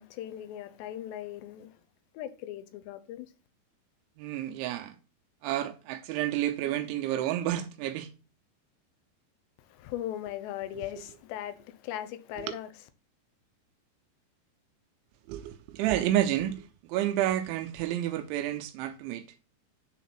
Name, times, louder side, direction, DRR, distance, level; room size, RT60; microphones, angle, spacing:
voice 1, 0.0-1.8 2.1-3.3 9.6-12.7, left 12 dB, 75° left, 3.0 m, -39 dB
voice 2, 4.2-5.0 5.4-8.1 10.8-11.0 12.4-12.5 15.3-19.3, right 12 dB, 85° right, 3.1 m, -30 dB
10.0 x 4.1 x 5.9 m
omnidirectional pair, 5.3 m